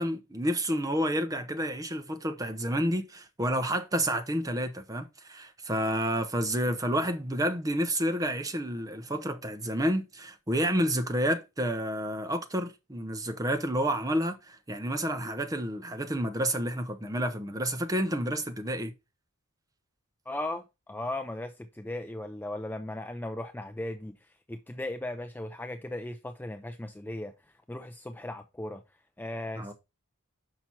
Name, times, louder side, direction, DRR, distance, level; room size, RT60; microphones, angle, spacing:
voice 1, 0.0-18.9 29.6-29.7, equal, 15° right, 0.7 m, -30 dB
voice 2, 20.3-27.3 27.7-28.8 29.2-29.7, left 1 dB, 10° left, 0.4 m, -37 dB
5.9 x 5.8 x 4.4 m
head